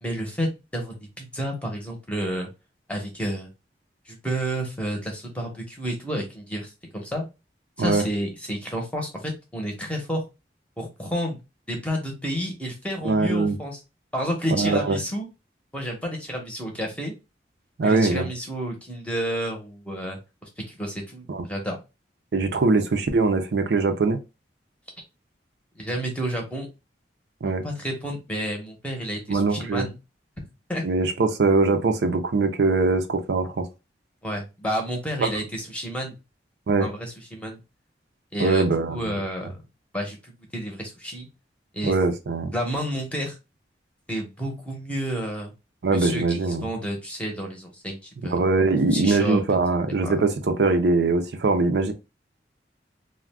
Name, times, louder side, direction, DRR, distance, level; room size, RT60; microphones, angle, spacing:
voice 1, 0.0-2.5 2.9-3.5 4.1-7.2 7.8-10.2 10.8-11.4 11.7-13.8 14.1-15.3 15.7-17.1 17.8-21.8 25.8-26.7 27.6-29.9 30.7-30.8 34.2-36.2 36.8-37.6 38.3-39.6 39.9-41.3 41.7-41.9 42.5-43.4 44.1-45.5 45.9-48.4 48.9-49.4 50.0-50.2, equal, 5° left, 0.7 m, -30 dB
voice 2, 13.0-13.6 14.5-15.0 17.8-18.3 21.3-21.5 22.3-24.2 27.4-27.6 29.3-29.9 30.8-33.7 35.2-35.3 36.7-36.9 38.4-39.2 41.8-42.5 45.8-46.7 48.2-51.9, right 3 dB, 70° right, 0.5 m, -22 dB
2.4 x 2.1 x 3.3 m
head